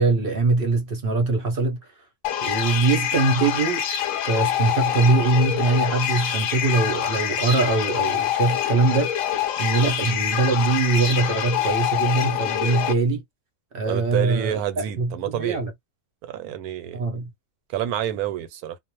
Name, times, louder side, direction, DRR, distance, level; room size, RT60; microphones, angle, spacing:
voice 1, 0.0-1.8 2.4-3.8 4.2-9.1 9.6-13.2 13.7-15.7 16.9-17.3, right 3 dB, 50° right, 0.7 m, -22 dB
sound 1, 2.2-12.9, left 10 dB, 70° left, 0.9 m, -25 dB
voice 2, 13.8-15.6 16.3-17.0 17.7-18.8, right 11 dB, 85° right, 1.1 m, -28 dB
2.4 x 2.1 x 3.0 m
omnidirectional pair, 1.6 m